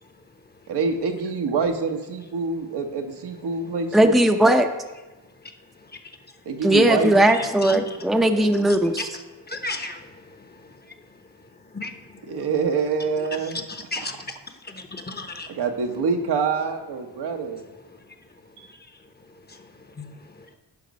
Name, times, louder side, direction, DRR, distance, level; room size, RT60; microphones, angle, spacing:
voice 1, 0.0-0.8 3.5-3.8 7.3-8.0 9.0-12.4 13.2-15.6 17.1-20.6, left 2 dB, 25° left, 1.0 m, -38 dB
voice 2, 0.7-4.2 6.5-7.1 12.3-13.6 15.5-17.6 18.6-18.7, right 5 dB, 75° right, 1.2 m, -26 dB
voice 3, 3.9-4.7 6.6-9.1, right 1 dB, ahead, 0.7 m, -18 dB
11.0 x 5.3 x 5.3 m
cardioid pair, 70°, 40 cm